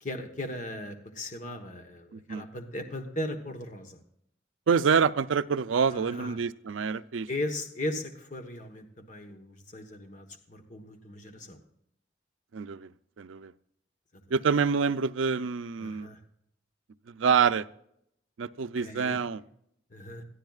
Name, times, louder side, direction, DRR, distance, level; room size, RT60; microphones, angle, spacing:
voice 1, 0.0-4.0 5.9-6.4 7.3-11.6 15.8-16.2 18.8-19.2 19.9-20.2, left 1 dB, 40° left, 5 dB, 1.2 m, -37 dB
voice 2, 2.1-2.4 4.7-7.3 12.5-12.9 13.2-13.5 14.3-16.1 17.1-17.7 18.4-19.4, right 6 dB, 85° right, 14 dB, 0.5 m, -26 dB
21.0 x 13.5 x 2.4 m, 0.73 s
head